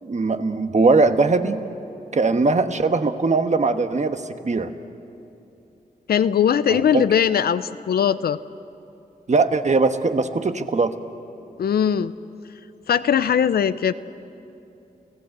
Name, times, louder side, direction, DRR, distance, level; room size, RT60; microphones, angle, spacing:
voice 1, 0.0-1.6 2.1-4.7 6.7-7.0 9.3-11.0, right 3 dB, 50° right, 8 dB, 1.3 m, -20 dB
voice 2, 6.1-8.4 11.6-12.2 12.9-13.9, left 8 dB, 85° left, 13 dB, 0.6 m, -20 dB
30.0 x 16.5 x 8.0 m, 2.8 s
cardioid pair, 55°, 16 cm